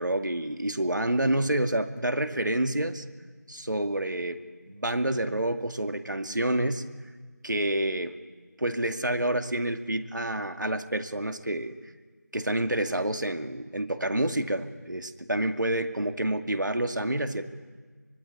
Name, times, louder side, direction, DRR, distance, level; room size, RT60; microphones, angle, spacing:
voice 1, 0.0-3.0 3.5-4.4 4.7-6.9 7.4-8.1 8.6-11.7 12.3-17.5, right 1 dB, 85° right, 8 dB, 2.2 m, -28 dB
24.0 x 24.0 x 9.8 m, 1.5 s
figure-of-eight pair, 175°, 10 cm